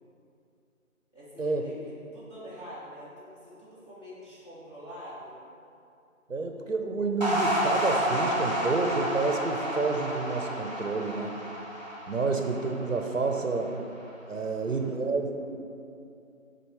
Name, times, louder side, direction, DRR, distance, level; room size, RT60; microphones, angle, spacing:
voice 1, 1.1-5.4, equal, 20° left, -12 dB, 1.6 m, -45 dB
voice 2, 6.3-11.3 12.1-13.7 14.3-15.6, right 3 dB, 65° right, 4 dB, 0.7 m, -29 dB
sound 1, 7.2-13.7, equal, 30° right, 0.8 m, -30 dB
7.4 x 4.0 x 4.7 m, 2.6 s
figure-of-eight pair, 170°, 42 cm